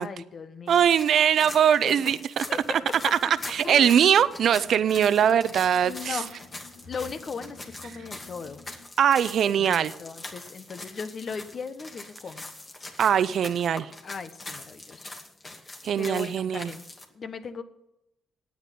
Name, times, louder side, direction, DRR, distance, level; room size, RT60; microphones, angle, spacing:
voice 1, 0.0-0.8 1.8-2.1 2.5-2.6 3.6-4.1 5.8-6.4 6.9-8.6 9.4-12.4 14.0-15.1 16.0-16.8 17.1-17.6, left 5 dB, 50° left, 11 dB, 1.2 m, -38 dB
sound 1, 0.7-17.0, left 2 dB, 35° left, 2.4 m, -43 dB
voice 2, 0.7-2.4 3.1-6.2 9.0-9.9 13.0-13.9 15.8-16.7, right 9 dB, 65° right, 15 dB, 0.5 m, -22 dB
sound 2, 2.4-8.8, left 4 dB, 85° left, 5.8 m, -51 dB
9.4 x 8.9 x 9.2 m, 0.86 s
supercardioid pair, 65°, 0 cm